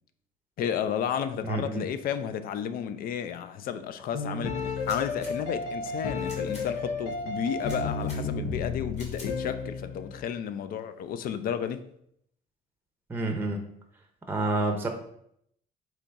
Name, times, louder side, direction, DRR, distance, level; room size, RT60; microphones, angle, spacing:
voice 1, 0.6-11.9, left 8 dB, 60° left, 0.4 m, -32 dB
voice 2, 1.4-1.9 13.1-13.6 14.3-14.9, right 2 dB, 15° right, 0.7 m, -28 dB
sound 1, 4.1-10.2, left 4 dB, 85° left, 0.8 m, -32 dB
sound 2, 4.8-5.3 6.2-6.7 7.6-8.2 8.9-9.3, left 2 dB, 40° left, 1.9 m, -47 dB
3.9 x 3.0 x 4.6 m
cardioid pair, 110°, 17 cm